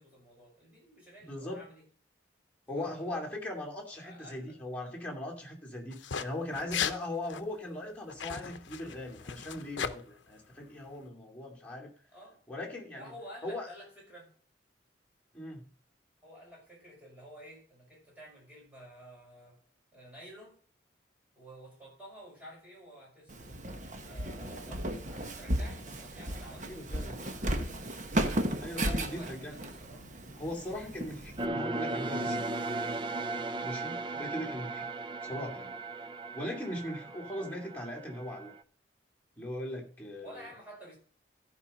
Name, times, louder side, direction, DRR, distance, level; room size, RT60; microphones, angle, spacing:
voice 1, 0.0-1.8 2.7-3.3 3.9-4.6 12.1-12.4 12.9-14.3 16.2-19.6 19.9-20.6 21.4-23.4 24.0-27.9 28.7-30.1 40.2-41.0, equal, 5° right, -4 dB, 6.2 m, -51 dB
voice 2, 1.3-1.6 2.7-11.9 12.5-13.1 13.4-13.7 15.3-15.6 26.7-27.4 28.6-29.5 30.4-32.5 33.6-34.9 35.2-35.7 36.3-38.5 39.4-40.5, left 1 dB, 10° left, -3 dB, 2.5 m, -39 dB
sound 1, 5.9-6.2 6.5-7.0 7.3-7.4 8.1-9.9, left 7 dB, 75° left, 0.7 m, -36 dB
Walk footsteps, 23.3-31.4, right 1 dB, 40° right, 1.0 m, -35 dB
sound 2, 31.4-38.6, right 2 dB, 25° right, 0.4 m, -37 dB
14.0 x 5.5 x 5.3 m, 0.43 s
head